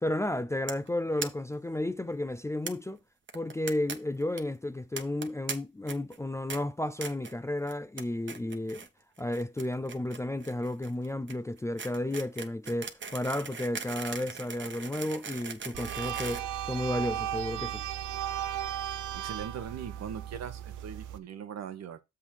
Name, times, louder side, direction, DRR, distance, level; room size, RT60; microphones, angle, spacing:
voice 1, 0.0-3.0 3.3-8.9 9.2-17.8, left 1 dB, 10° left, 0.5 m, -32 dB
sound 1, 0.7-0.9 1.2-1.3 1.5-1.6 1.9-2.0 2.7-2.8 3.3-4.0 4.2-4.4 5.0-5.5 5.9-6.2 6.5-6.6 7.0-7.3 7.7-8.0 8.3-8.9 9.2-17.2, right 5 dB, 40° right, 1.2 m, -39 dB
sound 2, 15.7-21.2, right 11 dB, 80° right, 0.7 m, -36 dB
voice 2, 19.1-22.0, right 8 dB, 60° right, 1.1 m, -40 dB
7.2 x 3.6 x 6.3 m
cardioid pair, 90°, 30 cm